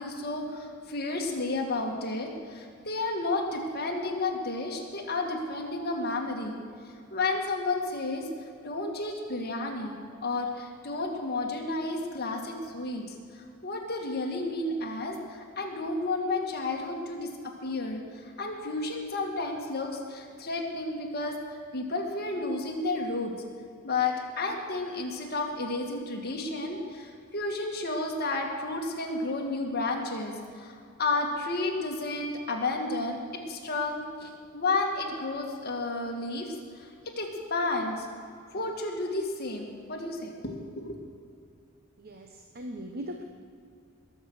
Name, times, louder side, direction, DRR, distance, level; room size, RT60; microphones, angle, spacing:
voice 1, 0.0-6.6 7.1-8.3 8.6-13.2 13.6-21.4 21.7-23.3 23.8-38.1 38.5-41.0, left 2 dB, 50° left, 1 dB, 2.1 m, -32 dB
voice 2, 42.0-43.2, equal, 50° right, 4 dB, 0.9 m, -39 dB
20.5 x 7.9 x 6.4 m, 2.4 s
head